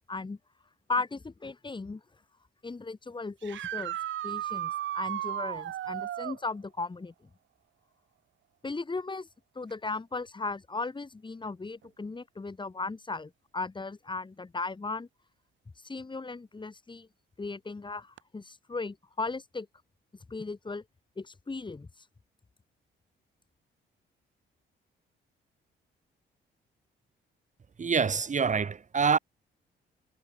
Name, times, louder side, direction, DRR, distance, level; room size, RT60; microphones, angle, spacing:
voice 1, 0.9-2.0 2.6-4.0 4.2-7.1 8.6-9.3 9.5-15.1 15.8-17.1 17.4-19.7 20.3-20.8 21.2-21.9, left 3 dB, 25° left, 3.3 m, -36 dB
sound 1, 3.4-6.4 9.7-9.8 11.8-11.9 18.2-18.3, right 12 dB, 70° right, 1.4 m, -34 dB
voice 2, 27.8-29.2, right 5 dB, 40° right, 3.0 m, -26 dB
cardioid pair, 90°, 20 cm